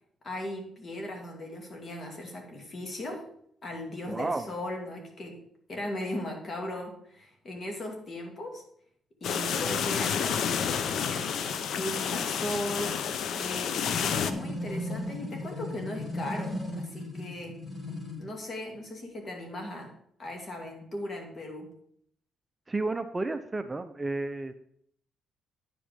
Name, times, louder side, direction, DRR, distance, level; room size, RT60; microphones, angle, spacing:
voice 1, 0.2-3.3 3.6-5.4 5.7-8.6 9.2-12.9 13.4-17.6 18.2-19.9 20.2-21.7, left 1 dB, 40° left, 2 dB, 2.4 m, -37 dB
voice 2, 4.1-4.5 22.7-24.5, right 2 dB, 20° right, 9 dB, 0.5 m, -32 dB
sound 1, 9.2-14.3, left 7 dB, 70° left, 0.6 m, -30 dB
sound 2, 14.3-18.3, left 1 dB, 20° left, 2.4 m, -36 dB
9.9 x 5.0 x 5.2 m, 0.68 s
cardioid pair, 90°, 0 cm